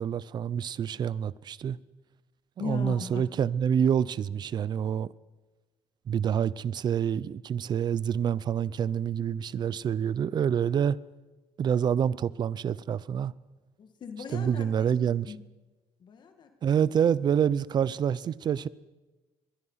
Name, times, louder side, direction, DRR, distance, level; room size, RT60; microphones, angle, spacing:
voice 1, 0.0-1.8 2.6-5.1 6.1-11.0 11.6-13.3 14.3-15.3 16.6-18.7, right 8 dB, 45° right, 0.7 m, -27 dB
voice 2, 2.6-3.2 13.8-14.7 15.3-15.4 16.0-16.7, left 6 dB, 45° left, 2.2 m, -38 dB
24.5 x 21.5 x 5.8 m
cardioid pair, 120°, 11 cm